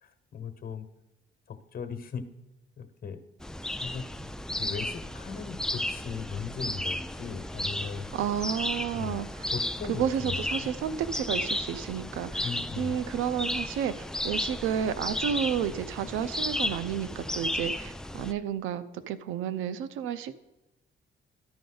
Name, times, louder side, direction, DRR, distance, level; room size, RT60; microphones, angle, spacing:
voice 1, 0.0-0.9 1.5-2.2 2.8-3.2 3.8-4.0 4.6-8.1 8.9-9.2 9.5-10.7 12.4-13.0, left 6 dB, 50° left, 9 dB, 1.0 m, -38 dB
sound 1, 3.4-18.3, left 1 dB, 5° left, 0.3 m, -34 dB
voice 2, 8.1-9.3 9.9-12.5 12.8-20.3, right 9 dB, 90° right, 14 dB, 0.5 m, -31 dB
13.0 x 5.3 x 3.9 m, 0.98 s
cardioid pair, 90°, 20 cm